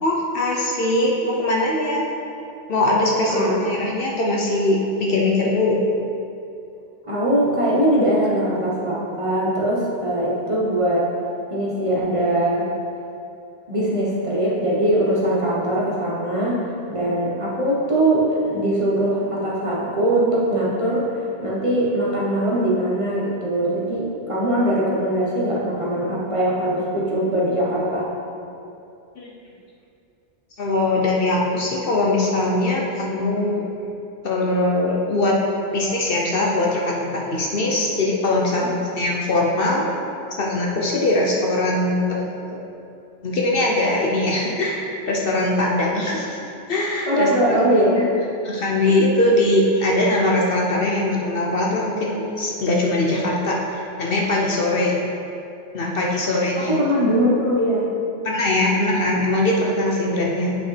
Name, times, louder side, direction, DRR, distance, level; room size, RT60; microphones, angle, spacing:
voice 1, 0.0-2.0 2.7-5.8 29.2-29.3 30.6-33.6 34.2-35.4 35.7-39.9 40.4-42.6 43.2-46.4 46.7-47.6 48.4-54.9 55.7-56.8 58.2-60.6, left 2 dB, 55° left, -2 dB, 0.9 m, -21 dB
voice 2, 3.3-3.8 7.0-11.1 11.5-12.7 13.7-28.1 38.6-38.7 47.0-48.1 56.6-57.9, right 1 dB, 30° right, -6 dB, 1.1 m, -21 dB
8.3 x 5.1 x 3.3 m, 2.7 s
omnidirectional pair, 1.2 m